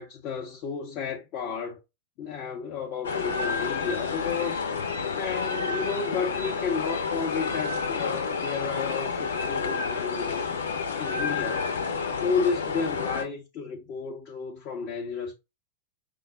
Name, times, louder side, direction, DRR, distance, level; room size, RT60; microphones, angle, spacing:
voice 1, 0.0-1.8 2.2-4.6 5.1-10.5 11.0-11.7 12.2-15.3, left 5 dB, 40° left, 0.8 m, -32 dB
sound 1, 3.0-13.2, left 5 dB, 65° left, 0.9 m, -29 dB
5.4 x 2.0 x 3.6 m
figure-of-eight pair, 90°, 0 cm